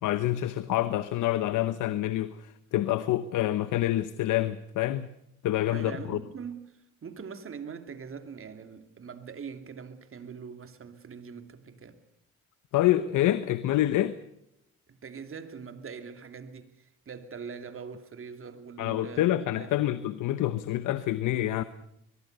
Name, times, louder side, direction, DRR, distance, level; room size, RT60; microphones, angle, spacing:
voice 1, 0.0-5.1 5.4-6.2 12.7-14.2 18.8-21.6, left 14 dB, 85° left, 1.1 m, -27 dB
voice 2, 5.7-6.7 7.0-12.0 14.9-19.9, right 6 dB, 45° right, 2.9 m, -42 dB
22.5 x 22.5 x 6.8 m
cardioid pair, 90°, 30 cm